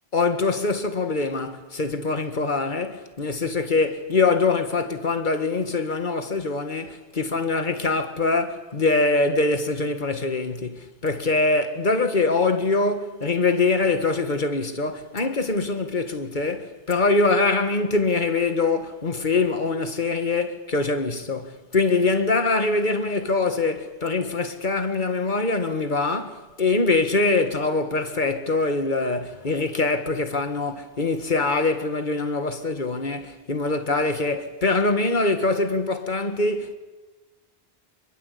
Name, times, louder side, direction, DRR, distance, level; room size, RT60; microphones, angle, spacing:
voice 1, 0.1-36.7, left 3 dB, 50° left, 2.0 m, -23 dB
26.0 x 23.5 x 8.5 m
omnidirectional pair, 1.1 m